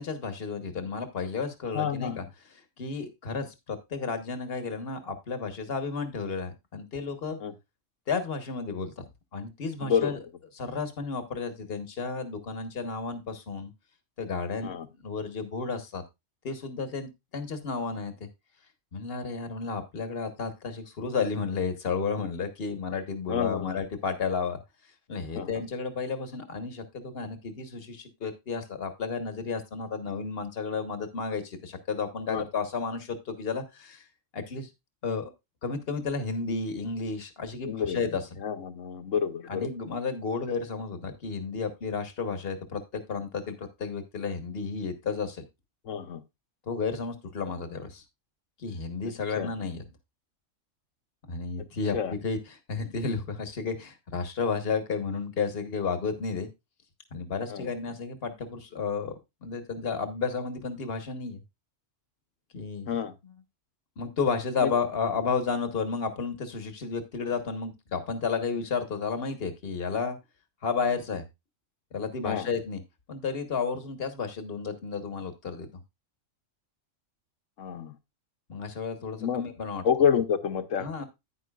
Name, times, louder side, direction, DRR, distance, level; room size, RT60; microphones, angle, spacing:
voice 1, 0.0-7.4 8.1-9.0 9.3-10.2 10.5-13.7 14.2-14.7 15.0-16.0 16.4-18.3 18.9-24.6 25.1-34.0 34.3-34.7 35.0-35.3 35.6-38.3 39.5-45.4 46.7-48.0 48.6-49.8 51.3-56.5 57.1-59.1 59.4-61.4 62.5-63.0 63.2-63.3 64.0-70.2 70.6-71.2 71.9-72.8 73.1-75.7 78.5-79.8 80.8-81.0, left 5 dB, 50° left, 1.5 m, -32 dB
voice 2, 1.7-2.2 7.4-7.5 9.8-10.1 14.6-14.9 23.3-23.8 25.3-25.5 32.3-32.4 37.6-38.0 38.4-39.7 45.9-46.2 49.4-49.5 51.9-52.1 57.5-57.7 62.9-63.1 64.6-64.7 72.2-72.5 77.6-77.9 79.2-79.4 79.8-80.9, left 7 dB, 75° left, 1.3 m, -28 dB
10.0 x 9.7 x 2.4 m
omnidirectional pair, 1.3 m